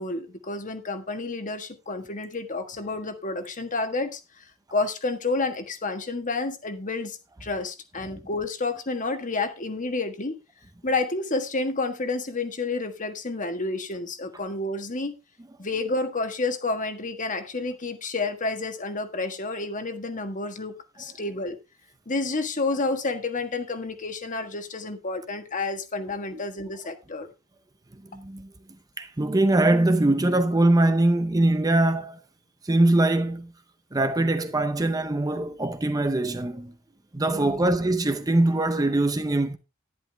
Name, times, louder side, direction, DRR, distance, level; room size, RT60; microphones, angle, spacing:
voice 1, 0.0-10.4 10.8-15.2 15.6-21.6 22.1-27.3 37.3-37.7, left 3 dB, 40° left, 1.5 m, -30 dB
voice 2, 28.1-28.5 29.0-32.2 32.6-33.5 33.9-36.7 37.1-39.6, right 2 dB, 15° right, 0.7 m, -22 dB
11.0 x 11.0 x 3.4 m
head